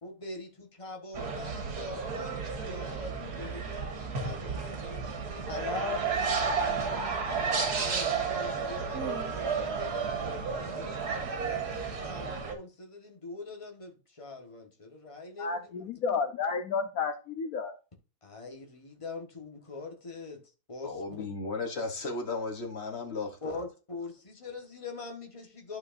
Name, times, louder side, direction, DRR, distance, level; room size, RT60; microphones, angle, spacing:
voice 1, 0.0-6.0 7.1-10.9 11.4-15.9 18.2-20.4 20.7-21.3 23.4-25.8, left 3 dB, 20° left, 1.4 m, -43 dB
sound 1, 1.1-12.5, right 5 dB, 85° right, 1.8 m, -32 dB
voice 2, 15.4-17.8, left 5 dB, 70° left, 1.1 m, -31 dB
voice 3, 20.8-23.6, left 3 dB, 45° left, 1.3 m, -35 dB
11.5 x 4.8 x 2.6 m
omnidirectional pair, 1.6 m